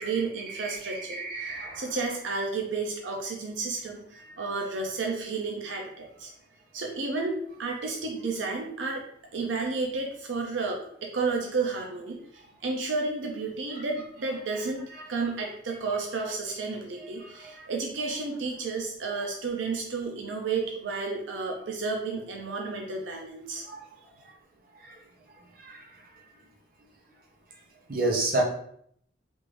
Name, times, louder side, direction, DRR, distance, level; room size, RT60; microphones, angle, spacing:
voice 1, 0.0-6.3 6.7-9.0 9.3-14.8 15.1-23.7, right 4 dB, 85° right, 1 dB, 0.5 m, -32 dB
voice 2, 0.6-1.8 17.2-17.6 23.7-23.8 24.8-25.0 25.6-25.9 27.9-28.4, right 2 dB, 55° right, 0 dB, 0.8 m, -31 dB
3.4 x 2.5 x 3.2 m, 0.67 s
head